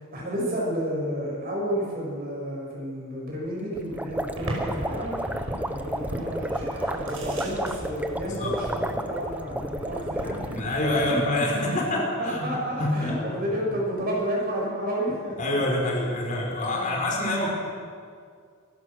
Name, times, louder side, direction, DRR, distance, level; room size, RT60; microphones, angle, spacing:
voice 1, 0.0-5.2 5.6-10.6 11.0-15.6 16.7-17.0, equal, 45° right, -3 dB, 7.6 m, -31 dB
sound 1, 3.8-10.6, right 1 dB, 5° right, 0.9 m, -32 dB
sound 2, 4.4-11.0, right 1 dB, 85° right, 5.5 m, -38 dB
voice 2, 10.6-12.4 12.8-13.2 15.4-17.5, left 1 dB, 40° left, -1 dB, 4.8 m, -26 dB
27.0 x 15.0 x 6.6 m, 2.2 s
head